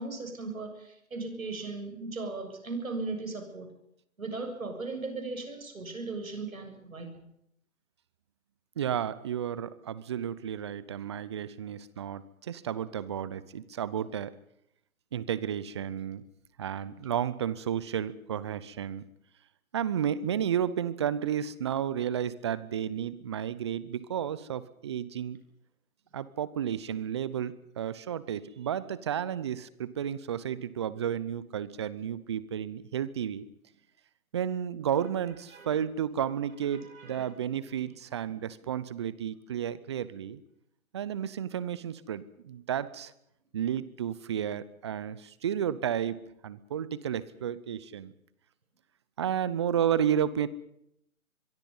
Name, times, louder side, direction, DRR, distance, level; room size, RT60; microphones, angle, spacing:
voice 1, 0.0-3.7 4.2-7.3 35.5-35.7 36.7-37.5 37.8-37.9, right 3 dB, 75° right, 6 dB, 7.1 m, -38 dB
voice 2, 8.8-14.3 15.1-16.2 16.6-19.1 19.7-25.4 26.1-33.5 34.3-40.4 40.9-43.1 43.5-48.1 49.2-50.5, right 9 dB, 20° right, 18 dB, 0.7 m, -32 dB
24.0 x 23.0 x 5.5 m, 0.76 s
figure-of-eight pair, 145°, 42 cm